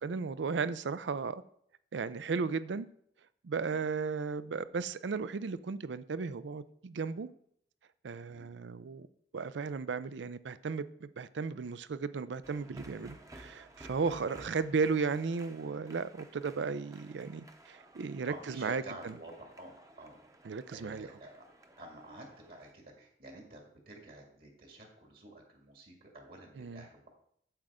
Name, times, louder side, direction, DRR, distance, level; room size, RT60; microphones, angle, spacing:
voice 1, 0.0-1.4 1.9-2.9 3.4-7.3 8.0-9.1 9.3-19.1 20.4-21.1 26.6-26.9, right 5 dB, 80° right, 0.5 m, -35 dB
sound 1, 12.4-22.7, right 1 dB, 20° right, 0.7 m, -55 dB
voice 2, 18.3-21.4 21.8-27.1, right 1 dB, 55° right, 2.0 m, -50 dB
9.0 x 7.7 x 3.6 m
head